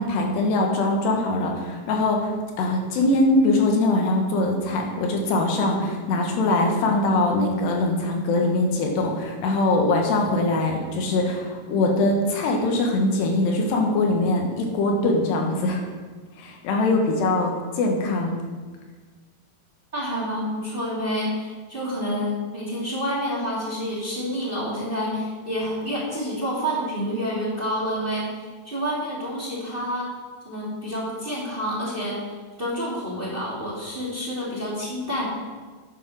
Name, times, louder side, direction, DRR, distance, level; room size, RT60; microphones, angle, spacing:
voice 1, 0.0-2.3 2.6-15.8 16.4-18.4, left 2 dB, 85° left, 1 dB, 3.7 m, -22 dB
voice 2, 19.9-28.3 28.6-30.1 30.4-32.2 32.6-35.3, equal, 15° right, -6 dB, 2.4 m, -28 dB
9.4 x 9.3 x 6.3 m, 1.4 s
omnidirectional pair, 4.7 m